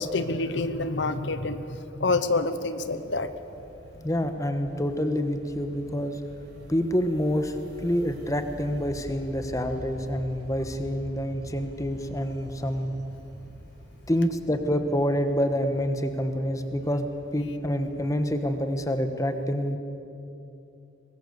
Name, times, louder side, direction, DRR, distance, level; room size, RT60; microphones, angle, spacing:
voice 1, 0.0-3.3, left 3 dB, 70° left, 11 dB, 0.9 m, -27 dB
sound 1, 2.7-19.0, equal, 55° right, 5.0 m, -47 dB
voice 2, 4.0-6.2 6.7-7.5 7.8-12.9 14.1-17.1 17.3-19.8, equal, 20° left, 7 dB, 1.2 m, -27 dB
23.5 x 20.0 x 7.0 m, 2.8 s
head